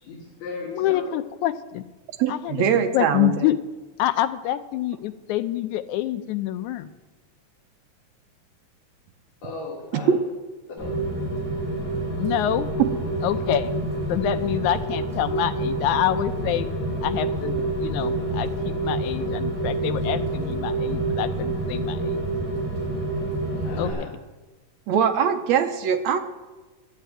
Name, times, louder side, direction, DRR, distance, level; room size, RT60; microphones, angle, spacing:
voice 1, 0.0-1.1 9.4-10.2 10.8-11.0 23.6-24.1, left 3 dB, 60° left, -3 dB, 3.2 m, -36 dB
voice 2, 0.7-1.8 2.3-2.6 2.9-3.6 4.0-6.9 12.2-12.7 13.2-13.7 14.1-16.7 17.0-22.2 23.8-24.1, left 12 dB, 80° left, 11 dB, 1.8 m, -26 dB
voice 3, 2.2-3.5 9.9-10.2 24.9-26.2, right 7 dB, 75° right, 7 dB, 1.7 m, -22 dB
Rain, 10.8-23.9, right 2 dB, 5° left, 5.8 m, -27 dB
11.5 x 8.4 x 9.0 m, 1.2 s
omnidirectional pair, 3.8 m